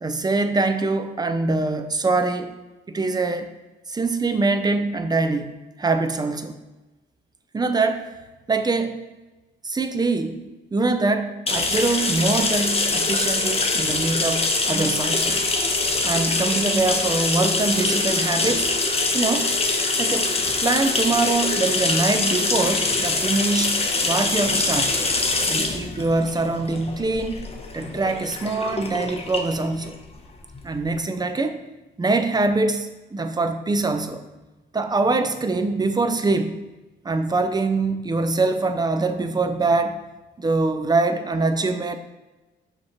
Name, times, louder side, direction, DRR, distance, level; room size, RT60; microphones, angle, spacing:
voice 1, 0.0-2.5 2.9-3.5 3.9-5.5 5.8-6.6 7.5-8.1 8.5-9.0 9.6-10.4 10.7-15.4 16.0-18.7 19.1-19.5 20.0-23.8 24.0-25.0 25.5-27.5 27.7-30.0 30.6-31.6 32.0-34.2 34.7-36.6 37.0-40.0 40.4-42.0, right 3 dB, 20° right, 8 dB, 0.6 m, -23 dB
sound 1, 11.5-30.9, left 3 dB, 30° left, 0.8 m, -24 dB
6.2 x 3.1 x 5.8 m, 1.1 s
cardioid pair, 90°, 20 cm